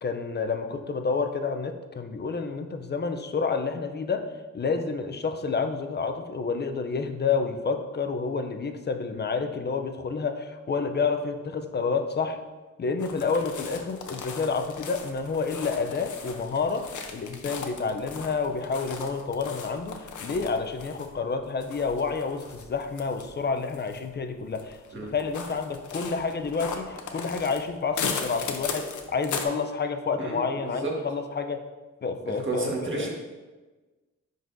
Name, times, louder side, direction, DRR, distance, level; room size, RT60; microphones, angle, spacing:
voice 1, 0.0-4.3 4.5-12.4 12.8-31.6 32.0-33.1, left 4 dB, 35° left, 7 dB, 0.5 m, -29 dB
sound 1, 13.0-29.5, left 5 dB, 85° left, 0.7 m, -38 dB
voice 2, 30.2-30.9 32.3-33.1, right 3 dB, 40° right, -2 dB, 1.5 m, -32 dB
10.5 x 3.9 x 2.6 m, 1.2 s
wide cardioid pair, 125°, 29 cm